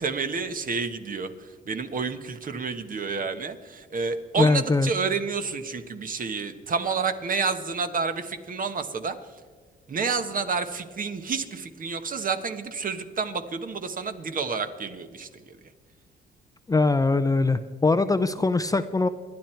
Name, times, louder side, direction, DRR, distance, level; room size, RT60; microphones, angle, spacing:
voice 1, 0.0-9.2 9.9-15.6, right 5 dB, 45° right, 9 dB, 1.3 m, -29 dB
voice 2, 4.4-4.9 16.7-19.1, left 3 dB, 15° left, 11 dB, 0.6 m, -22 dB
27.0 x 10.5 x 4.5 m, 1.5 s
cardioid pair, 90°, 20 cm